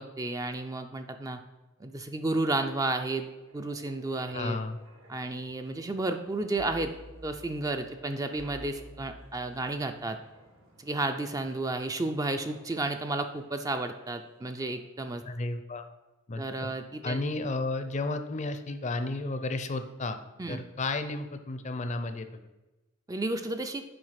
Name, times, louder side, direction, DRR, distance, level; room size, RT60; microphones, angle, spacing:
voice 1, 0.0-1.4 1.8-3.3 3.5-4.6 5.1-6.9 7.2-10.2 10.8-15.2 16.4-17.2 20.4-20.6 23.1-23.8, right 2 dB, 15° right, 6 dB, 0.4 m, -32 dB
Wind, 1.9-14.3 14.6-14.8, right 1 dB, 85° right, 1.8 m, -53 dB
voice 2, 4.3-4.8 15.2-15.9 16.3-16.7 17.0-20.2 20.5-22.3, left 2 dB, 35° left, 9 dB, 0.5 m, -32 dB
7.8 x 5.0 x 5.7 m, 1.1 s
head